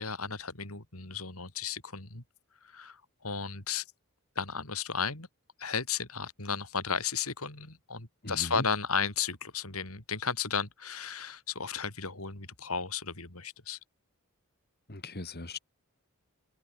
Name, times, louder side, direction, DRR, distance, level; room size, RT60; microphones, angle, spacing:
voice 1, 0.0-2.2 2.6-3.8 4.3-5.3 5.6-13.8, left 6 dB, 75° left, 5.1 m, -34 dB
voice 2, 8.2-8.6 14.9-15.6, left 2 dB, 45° left, 2.7 m, -38 dB
head